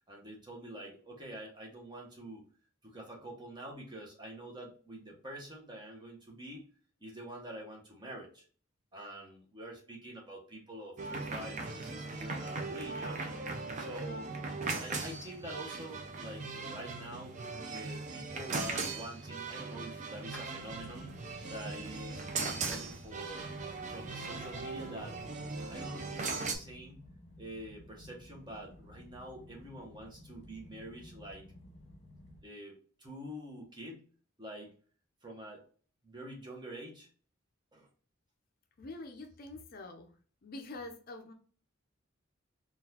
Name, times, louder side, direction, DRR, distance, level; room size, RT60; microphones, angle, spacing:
voice 1, 0.1-2.4 2.8-6.7 7.0-8.4 8.9-13.3 13.8-14.3 14.8-17.4 17.7-21.1 21.5-23.5 23.9-25.2 25.7-27.1 27.4-31.4 32.4-34.0 34.4-34.7 35.2-35.6 36.0-37.1 37.7-37.9, right 1 dB, 20° right, -1 dB, 0.8 m, -46 dB
sound 1, 11.0-26.6, right 3 dB, 35° right, 0.4 m, -39 dB
sound 2, 18.5-23.5, left 1 dB, 5° left, 0.8 m, -58 dB
sound 3, 20.6-32.4, left 1 dB, 30° left, 1.2 m, -54 dB
voice 2, 38.8-40.1 40.4-41.3, left 2 dB, 45° left, 5 dB, 0.4 m, -45 dB
3.8 x 2.4 x 2.7 m, 0.42 s
head